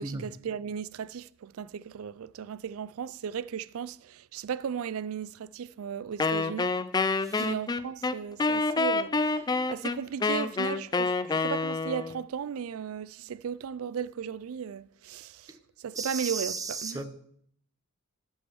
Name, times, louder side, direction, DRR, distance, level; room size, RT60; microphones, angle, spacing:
voice 1, 0.0-6.7 7.4-17.0, right 7 dB, 70° right, 0.4 m, -36 dB
Wind instrument woodwind instrument, 6.2-12.2, left 3 dB, 20° left, 0.3 m, -28 dB
voice 2, 16.0-17.0, right 4 dB, 15° right, 0.8 m, -35 dB
11.5 x 6.3 x 6.3 m
head